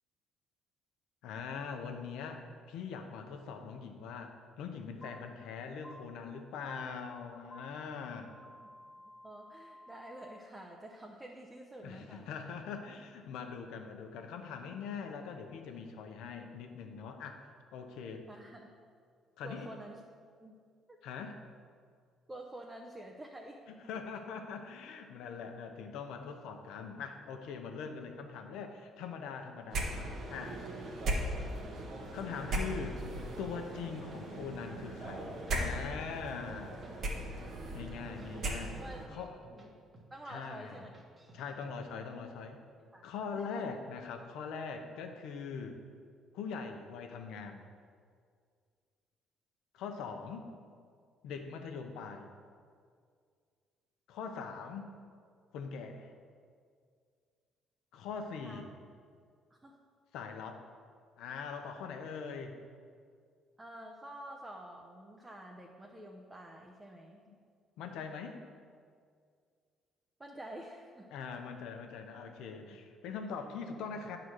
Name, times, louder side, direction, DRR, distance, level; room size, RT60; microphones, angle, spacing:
voice 1, 1.2-8.3 11.8-17.4 17.7-18.3 19.4-19.7 21.0-21.4 23.7-30.6 31.3-31.5 32.1-33.0 33.4-36.7 37.7-38.8 39.1-39.3 40.3-40.8 41.3-42.6 43.0-45.8 46.3-47.7 49.7-50.5 51.2-52.3 54.1-54.9 55.5-56.1 57.9-58.7 60.1-60.6 61.2-62.6 67.3-67.4 67.8-68.4 71.1-74.2, left 5 dB, 85° left, 5 dB, 0.8 m, -42 dB
sound 1, 5.0-5.1 5.8-5.9 6.7-6.8 7.5-7.6 8.3-10.4, left 1 dB, 35° left, 1.4 m, -53 dB
voice 2, 9.2-12.3 18.3-18.7 19.4-20.0 20.4-20.6 20.9-21.0 22.3-23.6 24.1-24.2 37.8-38.0 38.8-39.7 40.1-40.9 42.9-43.7 50.0-50.2 58.4-58.6 59.6-59.7 63.6-67.2 70.2-71.1, right 1 dB, 15° right, 0 dB, 0.7 m, -49 dB
sound 2, 29.7-39.1, right 1 dB, 60° right, 1.4 m, -38 dB
sound 3, 31.4-32.1 32.4-33.6 33.8-34.8 35.1-36.9 37.2-37.5 37.8-39.7 39.9-40.3 40.6-41.7, right 2 dB, 30° right, 1.5 m, -57 dB
9.2 x 3.9 x 6.4 m, 2.1 s
cardioid pair, 95°, 0 cm